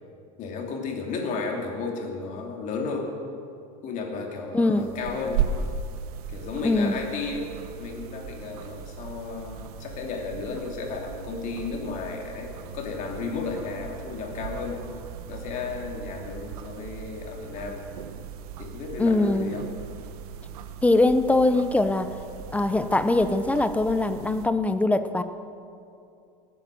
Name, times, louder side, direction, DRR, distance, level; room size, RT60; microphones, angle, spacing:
voice 1, 0.4-3.1 3.8-5.4 6.3-7.5 7.8-14.8 15.3-17.8 18.6-19.6, left 4 dB, 45° left, 1 dB, 2.8 m, -33 dB
voice 2, 4.5-4.9 6.6-7.0 19.0-19.5 20.8-22.1 22.5-25.2, left 2 dB, 10° left, 11 dB, 0.5 m, -22 dB
sound 1, 4.8-24.5, right 7 dB, 85° right, 1.1 m, -37 dB
18.5 x 8.6 x 7.6 m, 2.5 s
supercardioid pair, 140°, 19 cm